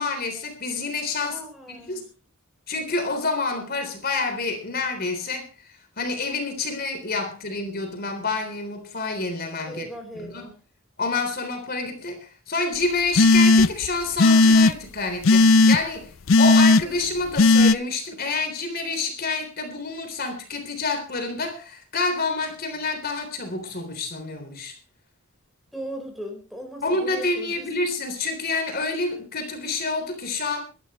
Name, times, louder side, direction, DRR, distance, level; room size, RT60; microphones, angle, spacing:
voice 1, 0.0-1.4 1.9-2.1 2.7-5.5 6.0-9.9 10.2-10.5 11.0-16.1 16.4-24.8 26.8-30.6, left 3 dB, 45° left, 6 dB, 3.7 m, -28 dB
voice 2, 1.2-2.1 9.7-10.6 25.7-27.7, right 1 dB, ahead, 4 dB, 4.6 m, -38 dB
sound 1, 13.2-13.9 14.2-14.7 15.2-15.8 16.3-16.8 17.4-17.7, left 3 dB, 70° left, 0.6 m, -14 dB
23.5 x 12.0 x 3.2 m, 0.33 s
head